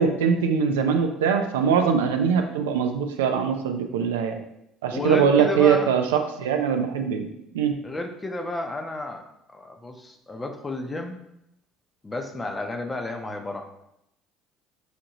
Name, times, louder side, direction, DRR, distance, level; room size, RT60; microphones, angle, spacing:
voice 1, 0.0-4.4 4.8-7.3 7.5-7.7, right 7 dB, 90° right, 5 dB, 0.4 m, -22 dB
voice 2, 4.9-5.9 7.8-9.2 9.5-11.2 12.0-13.8, left 2 dB, 20° left, 4 dB, 0.7 m, -31 dB
5.0 x 2.6 x 2.9 m, 0.81 s
hypercardioid pair, 70°, 0 cm